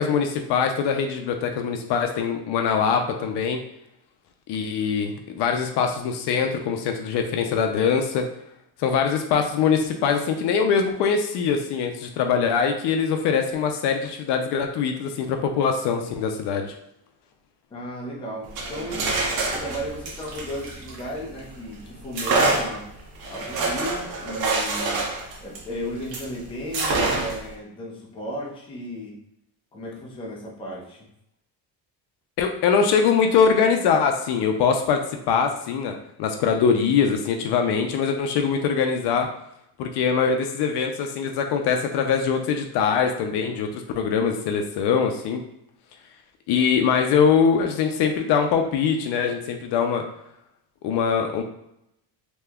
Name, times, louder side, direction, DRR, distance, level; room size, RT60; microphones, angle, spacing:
voice 1, 0.0-3.6 4.5-8.3 8.8-16.7 32.4-39.3 39.8-45.4 46.5-50.0 50.8-51.4, left 6 dB, 65° left, 4 dB, 0.5 m, -23 dB
voice 2, 17.7-19.1 19.4-22.9 23.3-25.1 25.4-29.2 29.7-31.0, equal, 15° left, -4 dB, 0.5 m, -35 dB
sound 1, 18.4-21.5 22.1-26.3 26.7-27.5, right 3 dB, 85° right, 0.8 m, -26 dB
2.9 x 2.2 x 3.4 m, 0.79 s
cardioid pair, 155°, 44 cm